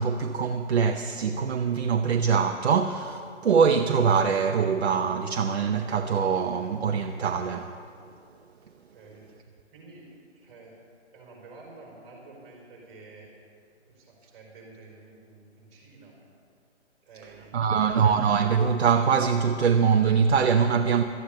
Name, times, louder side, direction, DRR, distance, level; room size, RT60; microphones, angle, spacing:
voice 1, 0.0-7.7 17.5-21.0, right 6 dB, 60° right, 0.8 m, -23 dB
voice 2, 8.9-10.8 11.1-13.3 13.9-16.2 17.0-18.1, right 3 dB, 30° right, 4.5 m, -50 dB
13.5 x 9.6 x 8.9 m
hypercardioid pair, 160°, 36 cm